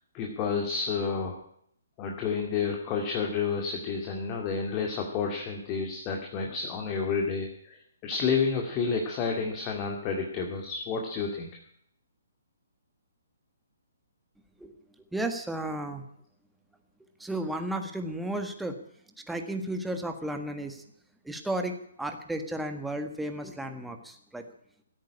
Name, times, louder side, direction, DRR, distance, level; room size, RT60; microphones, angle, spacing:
voice 1, 0.1-1.4 2.0-11.5, left 5 dB, 25° left, 2 dB, 2.2 m, -30 dB
voice 2, 15.1-16.0 17.2-18.7 19.3-20.8 21.2-24.4, right 1 dB, 5° right, 5 dB, 1.6 m, -33 dB
16.0 x 9.0 x 9.8 m, 0.70 s
figure-of-eight pair, 130°, 0 cm